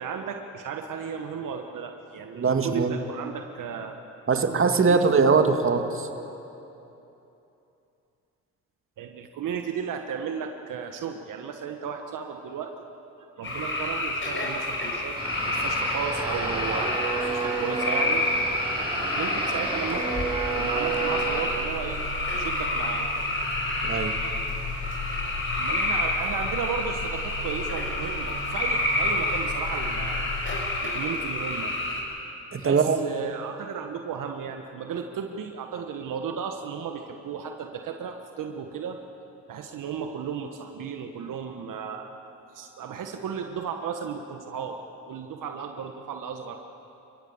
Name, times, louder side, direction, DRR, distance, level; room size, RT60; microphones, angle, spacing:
voice 1, 0.0-3.9 4.3-5.0 5.3-5.5 9.0-12.7 13.4-15.2 15.4-18.2 19.2-20.1 20.5-22.0 22.3-23.1 25.6-30.2 30.8-31.7 32.6-39.0 39.5-42.1 42.5-44.8 45.1-46.6, right 7 dB, 65° right, 5 dB, 1.5 m, -34 dB
voice 2, 2.3-3.0 4.3-6.1 23.8-24.2 32.5-33.0, right 5 dB, 40° right, 6 dB, 2.0 m, -22 dB
sound 1, 13.4-32.0, left 2 dB, 35° left, 5.7 m, -29 dB
sound 2, 15.2-21.4, right 3 dB, 15° right, 7.3 m, -30 dB
sound 3, 20.0-30.6, left 3 dB, 80° left, 3.3 m, -37 dB
28.0 x 16.0 x 7.3 m, 2.9 s
supercardioid pair, 70°, 34 cm